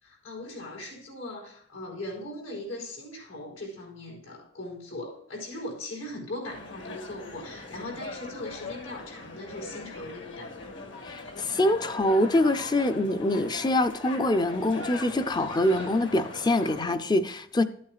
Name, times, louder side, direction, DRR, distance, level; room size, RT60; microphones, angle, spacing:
voice 1, 0.0-10.7 12.9-13.0, left 1 dB, 85° left, 4.6 m, -39 dB
sound 1, 6.5-16.9, left 2 dB, 65° left, 1.7 m, -40 dB
voice 2, 11.0-17.6, left 1 dB, 20° left, 0.5 m, -25 dB
13.0 x 8.6 x 2.4 m
head